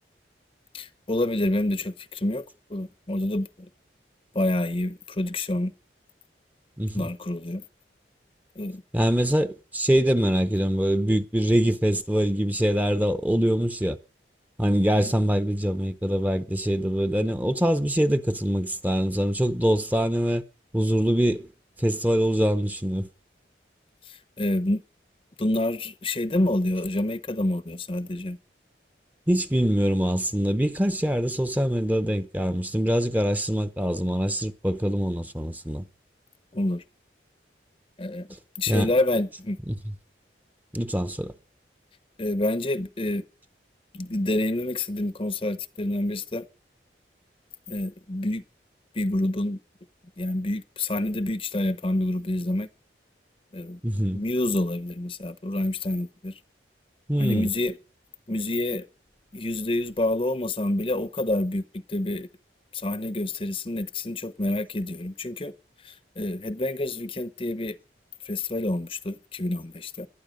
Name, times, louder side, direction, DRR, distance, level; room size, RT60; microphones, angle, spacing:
voice 1, 0.7-2.4 2.7-3.7 4.3-5.7 6.9-7.6 8.6-8.8 15.0-15.1 24.1-24.8 25.4-28.4 36.5-36.8 38.0-38.3 38.6-39.6 42.2-43.2 43.9-46.4 47.7-48.4 48.9-49.6 50.2-52.7 53.5-53.8 54.1-56.3 57.2-57.8 58.3-58.8 59.3-62.3 62.7-65.5 65.8-67.8 68.3-70.1, left 1 dB, 30° left, 0.8 m, -27 dB
voice 2, 6.8-7.1 8.9-14.0 14.6-20.4 20.7-21.5 21.8-23.1 29.3-35.8 38.7-38.9 39.7-39.8 40.7-41.3 53.8-54.2 57.1-57.5, equal, 10° right, 0.8 m, -24 dB
18.5 x 12.5 x 5.2 m
head